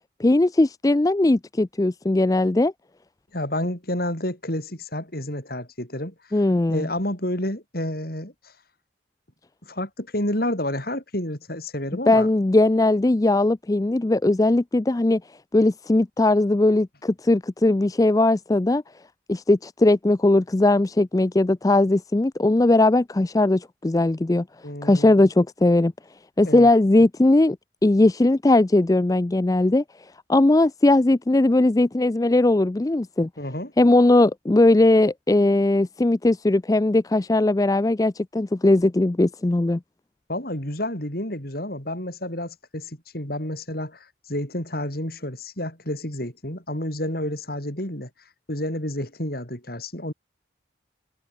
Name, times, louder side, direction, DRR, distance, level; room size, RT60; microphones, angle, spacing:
voice 1, 0.2-2.7 6.3-6.9 12.1-15.2 15.5-18.8 19.3-24.4 24.8-25.9 26.4-27.6 27.8-29.8 30.3-33.3 33.8-39.8, left 2 dB, 20° left, 0.4 m, -19 dB
voice 2, 3.3-6.1 6.7-8.5 9.6-12.3 24.6-25.1 26.4-26.7 33.4-33.7 40.3-48.1 48.5-50.1, left 1 dB, 50° left, 7.1 m, -30 dB
head